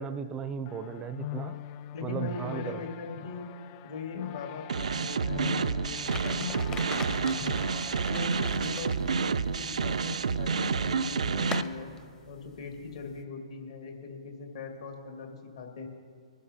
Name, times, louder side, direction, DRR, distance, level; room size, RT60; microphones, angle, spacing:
voice 1, 0.0-1.6 2.0-2.8, right 7 dB, 20° right, 11 dB, 0.5 m, -35 dB
sound 1, 0.7-8.7, left 13 dB, 35° left, 0.3 m, -42 dB
voice 2, 1.9-3.5 3.8-7.6 8.1-11.9 12.2-15.9, left 4 dB, 60° left, 2 dB, 2.4 m, -41 dB
sound 2, 4.7-11.6, right 5 dB, 75° right, 0.4 m, -29 dB
sound 3, 6.0-13.2, left 5 dB, 15° left, 0.7 m, -44 dB
22.5 x 12.0 x 2.8 m, 2.1 s
hypercardioid pair, 130°, 4 cm